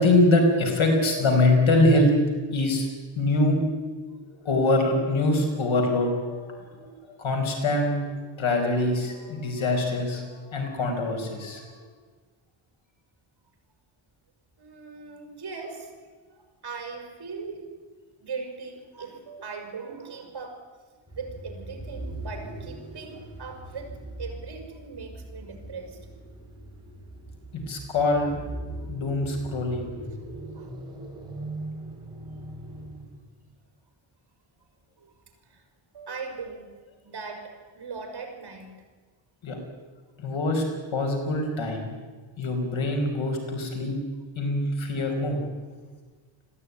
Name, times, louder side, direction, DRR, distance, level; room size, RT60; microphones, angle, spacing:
voice 1, 0.0-2.1 2.5-2.9 3.2-3.6 4.4-6.8 7.2-11.8 27.5-28.3 28.9-29.9 39.4-39.6 40.2-40.6 40.9-41.9 42.4-43.9 44.4-45.4, left 2 dB, 85° left, 3 dB, 5.4 m, -24 dB
voice 2, 14.6-17.8 18.2-20.8 21.1-23.9 24.2-26.0 28.8-28.9 30.5-30.8 35.0-35.2 35.4-35.7 35.9-36.7 37.0-38.7, right 4 dB, 55° right, 4 dB, 5.4 m, -39 dB
sound 1, 21.1-33.2, right 1 dB, 10° right, 5.2 m, -40 dB
21.0 x 15.0 x 9.8 m, 1.4 s
wide cardioid pair, 125°, 46 cm